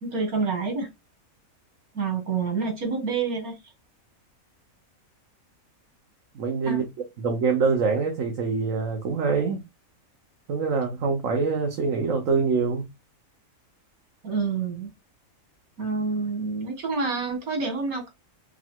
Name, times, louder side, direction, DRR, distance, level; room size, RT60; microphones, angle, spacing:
voice 1, 0.0-0.9 1.9-3.6 6.6-6.8 14.2-14.9 15.8-18.1, right 4 dB, 85° right, 2.2 m, -28 dB
voice 2, 6.3-6.9 7.2-9.6 10.5-12.9, right 5 dB, 65° right, 1.3 m, -24 dB
4.7 x 2.2 x 4.4 m
omnidirectional pair, 1.5 m